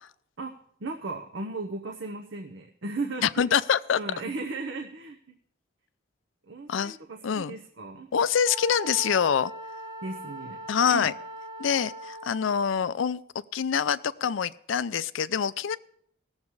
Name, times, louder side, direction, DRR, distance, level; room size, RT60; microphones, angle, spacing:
voice 1, 0.8-3.5 4.0-5.4 6.5-8.1 10.0-10.6 10.9-11.1, right 3 dB, 80° right, 2 dB, 0.9 m, -36 dB
voice 2, 3.2-4.0 6.7-7.0 7.2-7.6 8.1-9.5 10.7-11.1 11.6-13.2 13.5-15.8, left 7 dB, 90° left, 16 dB, 0.4 m, -25 dB
Wind instrument woodwind instrument, 8.4-12.6, right 2 dB, 20° right, 1.3 m, -40 dB
17.5 x 7.2 x 4.7 m, 0.66 s
head